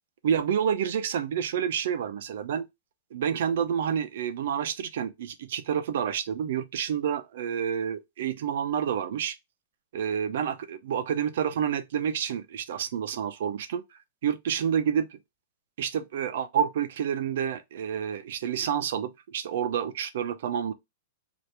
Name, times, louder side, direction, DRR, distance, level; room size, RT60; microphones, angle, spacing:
voice 1, 0.2-2.7 3.1-9.4 9.9-13.8 14.2-15.2 15.8-20.7, right 8 dB, 65° right, 0.5 m, -29 dB
2.9 x 2.5 x 3.2 m
hypercardioid pair, 155°, 0 cm